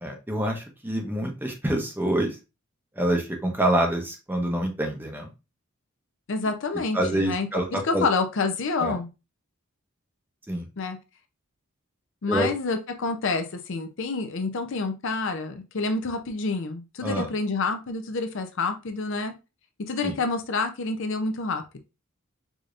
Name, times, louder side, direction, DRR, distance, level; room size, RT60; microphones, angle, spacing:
voice 1, 0.0-2.4 3.0-5.3 6.9-8.0 8.8-9.0 10.5-10.7 12.3-12.5 17.0-17.3 20.0-20.1, right 1 dB, 10° right, 3 dB, 0.7 m, -26 dB
voice 2, 6.3-7.5 7.8-9.1 10.8-11.0 12.2-19.3 19.9-21.8, left 3 dB, 60° left, 7 dB, 0.5 m, -28 dB
4.9 x 2.7 x 2.4 m, 0.27 s
head